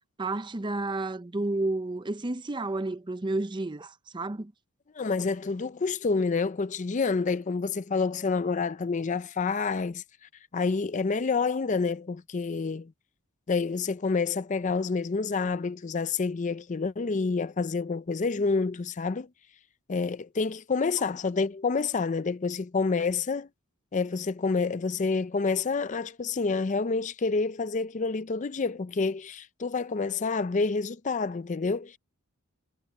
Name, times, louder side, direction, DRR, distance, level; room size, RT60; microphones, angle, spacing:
voice 1, 0.2-4.5, right 2 dB, 20° right, 0.6 m, -31 dB
voice 2, 4.9-12.9 13.5-19.3 19.9-23.5 23.9-32.0, left 4 dB, 35° left, 0.4 m, -28 dB
head